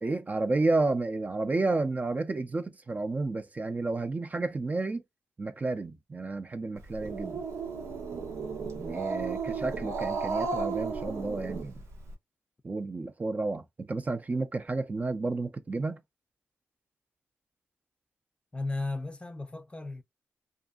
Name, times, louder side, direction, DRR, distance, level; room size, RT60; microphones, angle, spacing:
voice 1, 0.0-5.0 5.4-7.4 8.8-11.8 12.6-16.0, right 3 dB, 30° right, 0.5 m, -31 dB
Growling, 6.8-12.1, right 4 dB, 90° right, 0.8 m, -34 dB
voice 2, 9.2-9.7 18.5-20.0, left 2 dB, 20° left, 0.5 m, -36 dB
2.5 x 2.5 x 2.3 m
cardioid pair, 70°, 5 cm